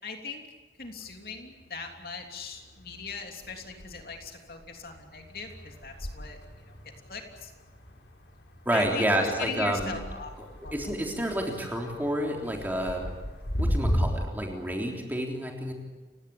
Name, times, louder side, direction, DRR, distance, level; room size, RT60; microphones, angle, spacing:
voice 1, 0.0-0.4 0.8-6.4 6.7-6.8 7.1-7.5 8.7-10.4 10.6-10.7, left 4 dB, 55° left, 3 dB, 3.2 m, -39 dB
sound 1, 0.8-2.1 2.4-14.1, equal, 80° left, 4.8 m, -36 dB
voice 2, 8.7-10.0 10.7-13.1 13.6-15.7, right 1 dB, 10° right, 1 dB, 3.5 m, -29 dB
30.0 x 17.0 x 8.6 m, 1.3 s
head